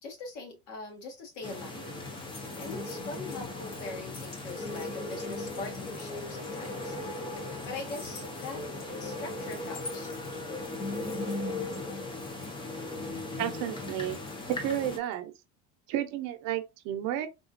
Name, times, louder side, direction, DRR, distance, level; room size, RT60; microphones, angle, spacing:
voice 1, 0.0-1.9 2.6-7.0 7.3-8.6 9.0-10.1, left 3 dB, 65° left, 1.5 m, -42 dB
sound 1, 0.9-15.1, left 3 dB, 80° left, 1.9 m, -51 dB
sound 2, 1.4-15.0, left 2 dB, 15° left, 0.5 m, -37 dB
voice 2, 13.4-14.2 14.5-15.3 15.9-17.3, right 11 dB, 65° right, 0.7 m, -32 dB
3.6 x 2.4 x 2.5 m
cardioid pair, 155°, 35 cm